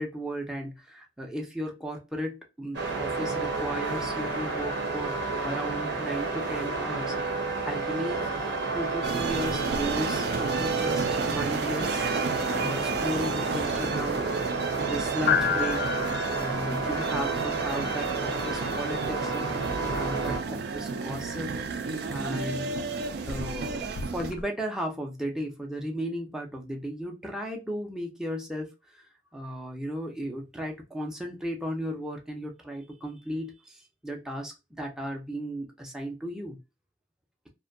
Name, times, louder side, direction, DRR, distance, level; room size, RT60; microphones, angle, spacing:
voice 1, 0.0-5.2 5.4-8.3 8.7-12.1 12.6-14.2 14.7-15.8 16.0-22.7 23.2-29.0 29.3-36.6, equal, 5° right, 1 dB, 0.5 m, -35 dB
sound 1, 2.7-20.4, right 3 dB, 80° right, 0.8 m, -31 dB
sound 2, 9.0-24.3, right 4 dB, 65° right, 0.4 m, -33 dB
sound 3, 9.3-24.4, left 7 dB, 65° left, 0.4 m, -36 dB
2.5 x 2.2 x 2.5 m, 0.26 s
head